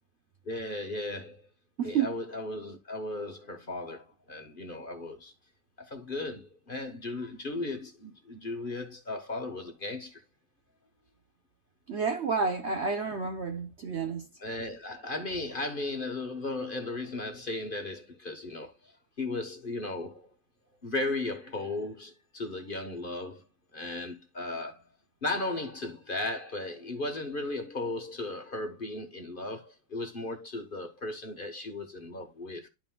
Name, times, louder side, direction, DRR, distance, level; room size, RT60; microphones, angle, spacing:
voice 1, 0.4-1.4 1.8-5.3 5.8-10.2 14.4-18.9 19.2-20.3 20.8-23.4 23.7-24.8 25.2-32.7, left 2 dB, 35° left, 1.2 m, -36 dB
voice 2, 1.8-2.1 11.9-14.2, right 5 dB, 50° right, 0.9 m, -30 dB
11.5 x 5.7 x 2.3 m
omnidirectional pair, 1.8 m